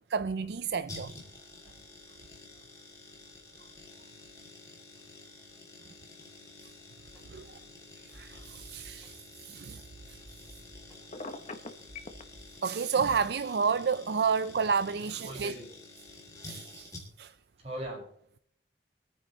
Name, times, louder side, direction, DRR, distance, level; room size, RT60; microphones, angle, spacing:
voice 1, 0.1-1.1 7.3-7.4 8.1-9.8 12.6-15.5 16.4-16.9 17.2-17.3, right 6 dB, 65° right, 0.4 m, -30 dB
sound 1, 0.9-17.4 17.6-17.7, left 2 dB, 20° left, 2.8 m, -50 dB
sound 2, 7.0-12.6, equal, 5° right, 3.4 m, -56 dB
Telephone, 11.1-12.2, left 3 dB, 40° left, 1.0 m, -40 dB
voice 2, 15.0-15.7 17.6-18.1, right 1 dB, 35° right, 6.0 m, -41 dB
25.0 x 9.4 x 3.2 m
head